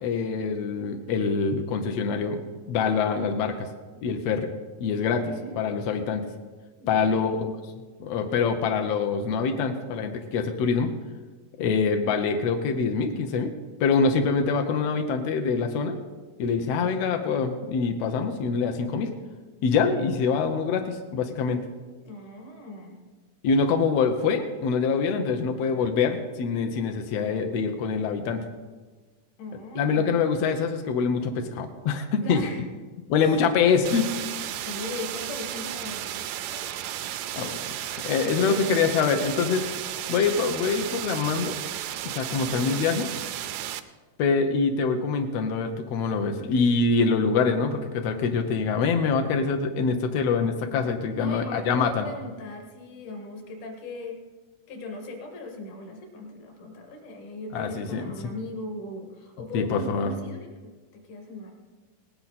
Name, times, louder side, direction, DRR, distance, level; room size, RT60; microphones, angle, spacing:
voice 1, 0.0-2.4 2.7-3.7 4.0-4.5 4.8-5.2 5.6-6.2 6.9-7.5 8.0-10.9 11.6-13.5 13.8-16.0 16.4-19.1 19.6-21.6 23.4-28.4 29.7-32.4 33.1-34.1 37.4-37.6 38.0-39.7 40.1-41.5 42.0-43.1 44.2-52.1 57.5-58.0 59.5-60.1, left 5 dB, 80° left, 5 dB, 1.4 m, -25 dB
voice 2, 5.1-5.9 6.8-7.3 16.4-17.0 22.0-23.0 29.4-30.2 32.2-32.6 33.2-33.4 34.2-36.7 38.1-38.9 42.3-42.9 51.1-54.2 54.7-61.6, left 1 dB, 65° left, 2 dB, 3.2 m, -39 dB
sound 1, 33.8-43.8, right 12 dB, 90° right, 1.7 m, -34 dB
18.5 x 10.5 x 4.1 m, 1.3 s
omnidirectional pair, 4.0 m